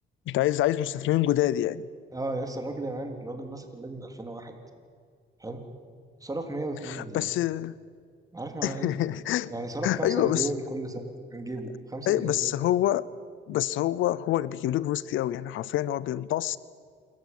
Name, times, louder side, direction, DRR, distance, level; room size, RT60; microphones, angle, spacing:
voice 1, 0.3-1.9 6.8-7.8 8.6-9.5 9.8-10.5 12.1-13.1 13.5-16.6, left 13 dB, 85° left, 20 dB, 0.6 m, -26 dB
voice 2, 2.1-4.6 5.4-5.6 6.2-7.3 8.3-8.9 9.5-12.5, right 2 dB, 15° right, 4 dB, 3.4 m, -35 dB
27.0 x 14.0 x 9.4 m, 2.1 s
cardioid pair, 90°, 20 cm